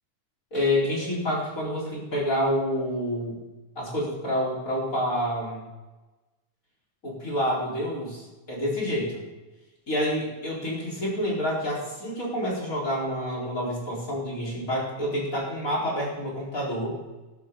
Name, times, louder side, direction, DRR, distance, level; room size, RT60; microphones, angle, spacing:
voice 1, 0.5-3.4 3.8-5.6 7.0-9.2 9.9-17.0, equal, 25° left, -4 dB, 4.6 m, -28 dB
13.0 x 13.0 x 3.9 m, 1.1 s
omnidirectional pair, 3.4 m